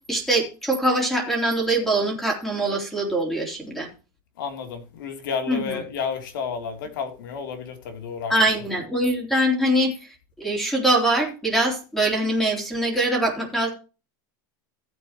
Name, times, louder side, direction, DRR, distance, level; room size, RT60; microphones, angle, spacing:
voice 1, 0.1-3.9 5.5-5.8 8.3-9.9 10.4-13.7, right 1 dB, 5° left, 3.6 m, -23 dB
voice 2, 4.4-8.3, left 6 dB, 80° left, 3.0 m, -31 dB
15.5 x 8.5 x 3.0 m
supercardioid pair, 145°, 11 cm